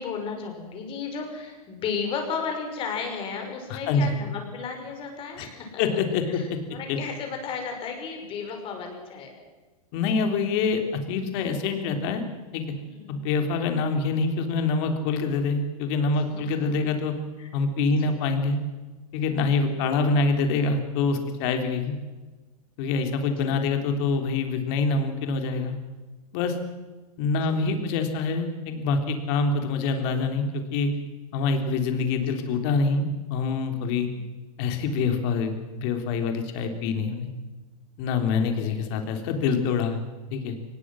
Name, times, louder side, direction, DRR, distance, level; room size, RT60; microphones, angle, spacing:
voice 1, 0.0-6.0 6.3-9.3 12.8-13.3 16.3-16.8 17.4-17.5 17.8-18.1 19.2-19.7 23.4-23.6 27.5-28.0 32.4-32.6 38.4-39.0, left 5 dB, 30° left, 4 dB, 5.6 m, -35 dB
voice 2, 3.7-4.1 5.4-5.5 5.8-6.6 6.9-7.0 9.9-12.3 12.5-12.6 13.1-17.1 17.5-18.6 19.1-22.0 22.8-25.8 26.3-26.6 27.2-30.9 31.3-34.1 34.6-37.3 38.0-40.0 40.3-40.6, left 4 dB, 45° left, 6 dB, 3.5 m, -25 dB
23.5 x 20.0 x 6.4 m, 1.2 s
hypercardioid pair, 145°, 19 cm